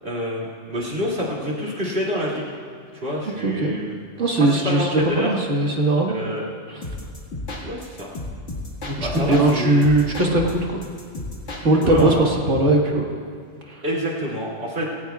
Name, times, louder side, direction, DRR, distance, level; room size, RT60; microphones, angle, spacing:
voice 1, 0.0-2.4 2.9-4.0 4.4-5.3 6.1-6.5 7.6-8.1 9.0-9.8 11.5-12.3 13.8-14.8, equal, 55° right, -5 dB, 2.9 m, -27 dB
voice 2, 3.4-3.8 4.2-6.2 6.7-6.8 8.8-10.8 11.6-13.0 13.7-13.8, right 2 dB, 80° right, 0 dB, 2.0 m, -20 dB
sound 1, 6.8-9.5 9.8-12.2, left 2 dB, 75° left, 2.2 m, -33 dB
19.0 x 17.5 x 2.4 m, 2.3 s
omnidirectional pair, 1.2 m